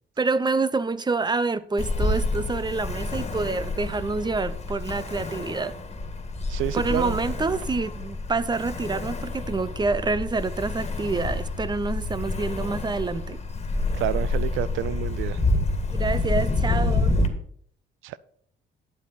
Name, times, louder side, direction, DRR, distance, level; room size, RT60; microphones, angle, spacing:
voice 1, 0.2-5.7 6.7-13.4 15.9-17.1, right 3 dB, 20° right, 0.7 m, -27 dB
Ocean, 1.8-17.3, left 2 dB, 30° left, 1.8 m, -28 dB
voice 2, 6.5-7.2 14.0-15.4 18.0-18.2, right 13 dB, 85° right, 0.5 m, -29 dB
11.0 x 8.7 x 4.1 m
cardioid pair, 90°, 20 cm